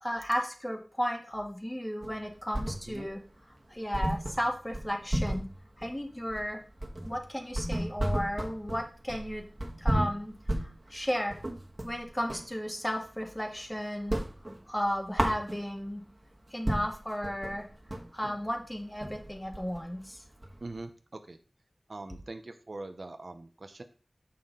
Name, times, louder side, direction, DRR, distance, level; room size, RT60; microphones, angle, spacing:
voice 1, 0.0-3.2 3.7-5.5 5.8-6.6 7.0-9.5 9.8-11.4 11.8-14.2 14.7-16.0 16.5-17.7 18.1-20.2, equal, 15° left, 2 dB, 1.5 m, -34 dB
sound 1, 2.0-3.2 3.5-3.6 3.9-12.5 12.9-13.7 13.9-16.0 16.4-16.5 16.7-20.8, right 1 dB, 35° right, 1.4 m, -33 dB
voice 2, 20.6-21.4 21.9-23.8, right 2 dB, 65° right, 8 dB, 0.7 m, -42 dB
7.0 x 5.8 x 3.8 m, 0.39 s
wide cardioid pair, 55°, 0 cm